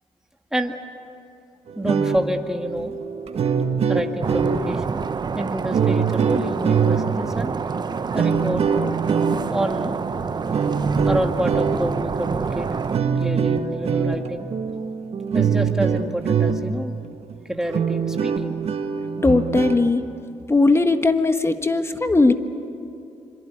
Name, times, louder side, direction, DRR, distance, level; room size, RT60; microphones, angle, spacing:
sound 1, 1.7-16.9 17.3-17.4 17.7-19.9, right 6 dB, 60° right, 1.7 m, -24 dB
voice 1, 1.8-3.0 3.9-5.0 5.3-7.5 8.1-8.6 9.5-10.0 11.1-12.7 13.2-14.5 15.3-16.9 17.5-18.6, right 1 dB, 5° right, 4 dB, 2.0 m, -28 dB
sound 2, 4.2-13.0, right 5 dB, 35° right, 0.8 m, -28 dB
voice 2, 19.2-20.0 20.5-22.3, left 3 dB, 20° left, 8 dB, 1.6 m, -18 dB
25.5 x 23.5 x 9.6 m, 2.6 s
cardioid pair, 75°, 12 cm